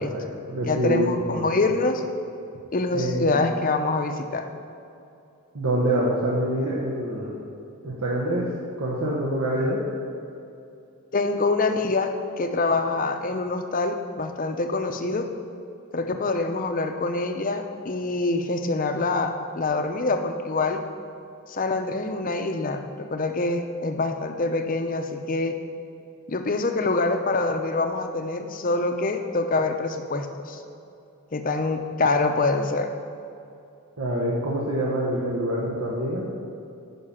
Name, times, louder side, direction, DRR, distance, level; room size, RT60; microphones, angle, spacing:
voice 1, 0.0-1.5 2.9-3.4 5.5-7.4 7.8-8.5 8.8-9.8 34.0-36.3, right 1 dB, 70° right, -5 dB, 1.2 m, -26 dB
voice 2, 0.6-2.0 2.7-4.4 11.1-15.3 15.9-20.8 21.5-25.6 26.3-30.6 31.3-32.9, left 3 dB, 40° left, 6 dB, 0.6 m, -25 dB
9.7 x 5.6 x 5.7 m, 2.6 s
head